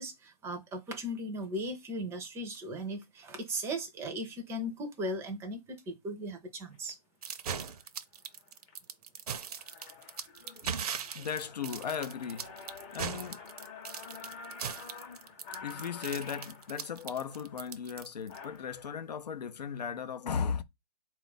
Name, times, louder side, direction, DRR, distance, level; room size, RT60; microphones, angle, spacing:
voice 1, 0.0-7.0, equal, 10° right, 0.5 m, -37 dB
sound 1, 6.7-6.9 7.6-7.8 8.3-8.8 9.2-9.3 9.5-18.9, left 5 dB, 25° left, 0.7 m, -49 dB
sound 2, 7.2-18.4, right 7 dB, 65° right, 0.6 m, -39 dB
voice 2, 10.4-13.4 15.6-20.6, left 7 dB, 80° left, 0.6 m, -37 dB
4.1 x 2.4 x 3.8 m
hypercardioid pair, 140°, 21 cm